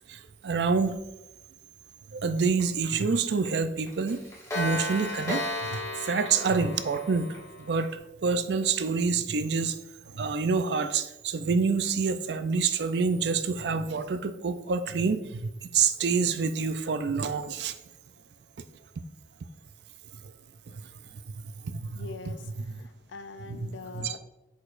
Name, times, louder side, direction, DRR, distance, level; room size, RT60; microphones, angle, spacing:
voice 1, 0.1-1.0 2.1-4.2 4.5-7.3 7.6-9.8 10.1-17.8 20.7-20.8 21.1-22.1 23.5-24.2, right 5 dB, 65° right, 11 dB, 0.4 m, -27 dB
Clock, 2.6-2.7 3.0-3.2 3.5-3.6 3.9-7.9, left 1 dB, 15° left, 1.1 m, -34 dB
voice 2, 21.9-24.2, left 4 dB, 85° left, 11 dB, 0.5 m, -43 dB
7.9 x 4.9 x 2.5 m, 0.97 s
head